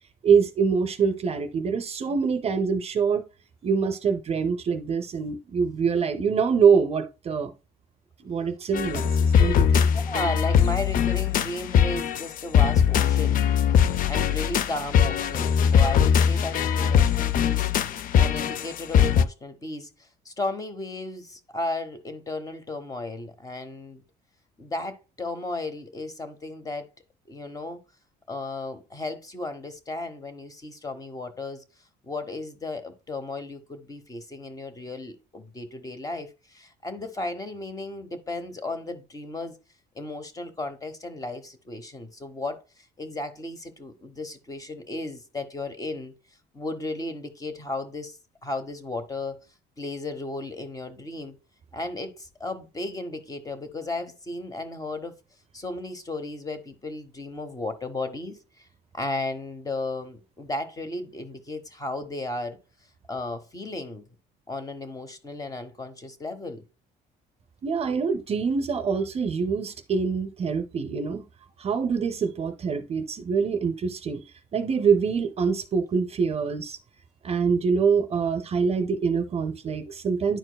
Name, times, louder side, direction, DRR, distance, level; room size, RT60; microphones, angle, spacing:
voice 1, 0.2-3.2 3.6-7.5 8.2-9.8 67.6-71.3 71.6-74.2 74.5-76.8 77.2-80.4, right 6 dB, 35° right, 0.5 m, -25 dB
sound 1, 8.7-19.2, left 8 dB, 55° left, 0.4 m, -21 dB
voice 2, 9.7-13.5 14.1-24.0 24.6-26.8 27.3-27.8 28.3-31.6 32.0-39.5 39.9-42.6 43.0-46.1 46.5-49.4 49.8-51.4 51.7-55.1 55.5-58.4 58.9-62.6 63.1-64.0 64.5-66.6, left 2 dB, 20° left, 0.9 m, -34 dB
10.0 x 4.4 x 2.2 m
cardioid pair, 110°, 17 cm